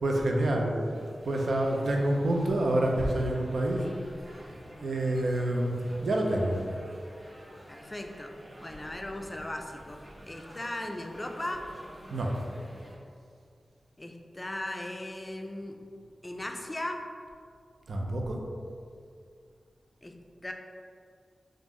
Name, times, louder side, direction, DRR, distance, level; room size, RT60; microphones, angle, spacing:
voice 1, 0.0-0.8 1.2-3.9 4.8-6.6 12.1-12.3 17.9-18.4, right 1 dB, 80° right, 0 dB, 0.4 m, -27 dB
Jazz Bar People Ambience (La Fontaine Copenhagen), 0.9-13.0, equal, 30° right, 0.6 m, -49 dB
voice 2, 7.7-8.3 8.6-10.0 10.3-11.6 14.0-15.8 16.2-17.0 20.0-20.1 20.4-20.5, left 1 dB, 25° left, 3 dB, 0.4 m, -37 dB
3.0 x 2.5 x 3.6 m, 2.2 s
cardioid pair, 60°, 0 cm